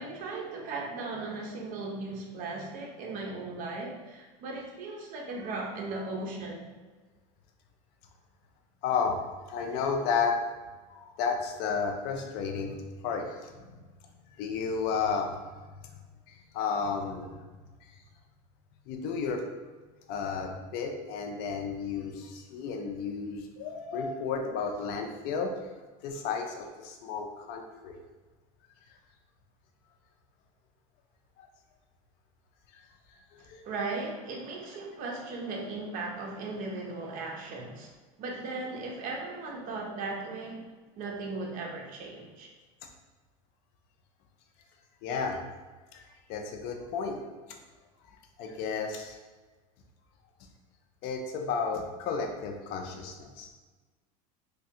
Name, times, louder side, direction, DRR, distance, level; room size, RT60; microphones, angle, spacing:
voice 1, 0.0-6.7 33.6-37.9 38.2-40.7 40.9-42.5, right 3 dB, 45° right, 0 dB, 0.7 m, -37 dB
voice 2, 8.8-9.2 9.5-10.4 10.9-13.7 14.3-15.3 16.3-17.4 18.9-19.4 20.1-25.5 26.0-28.0 32.7-32.8 33.4-33.6 45.0-45.4 45.9-47.2 48.4-49.2 51.0-53.6, left 5 dB, 55° left, 3 dB, 0.5 m, -32 dB
3.3 x 2.2 x 2.8 m, 1.3 s
supercardioid pair, 115°, 18 cm